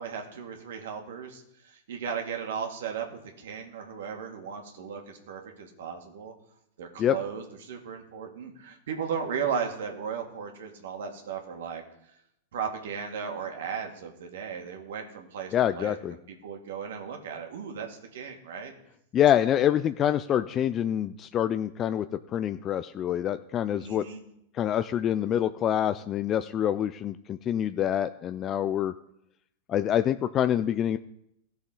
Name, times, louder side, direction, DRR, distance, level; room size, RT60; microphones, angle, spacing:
voice 1, 0.0-1.4 1.7-3.1 3.4-6.3 6.8-11.8 12.5-18.7 23.8-24.3, right 7 dB, 70° right, 3 dB, 2.2 m, -36 dB
voice 2, 15.5-16.1 19.1-24.1 24.5-28.9 29.7-31.0, left 10 dB, 35° left, 11 dB, 0.4 m, -26 dB
16.0 x 6.9 x 3.8 m, 0.78 s
hypercardioid pair, 100°, 0 cm